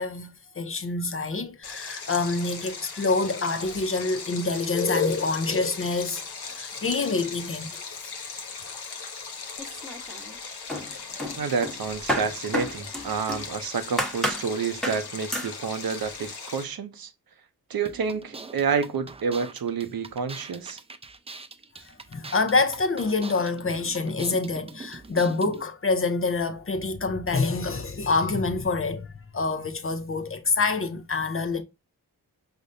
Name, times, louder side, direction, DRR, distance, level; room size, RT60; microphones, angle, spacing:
voice 1, 0.0-6.2 6.5-7.8 22.1-31.6, left 3 dB, 35° left, 0.5 m, -26 dB
Stream, 1.6-16.6, left 5 dB, 70° left, 0.8 m, -38 dB
sound 1, 9.6-10.4 10.7-13.5 14.0-14.5 14.8-15.1 15.3-15.6, equal, ahead, 1.0 m, -30 dB
voice 2, 11.3-17.1 17.7-20.8, right 6 dB, 60° right, 0.6 m, -29 dB
sound 2, 17.8-25.6, right 4 dB, 15° right, 0.4 m, -43 dB
5.0 x 2.1 x 2.5 m
cardioid pair, 45°, 40 cm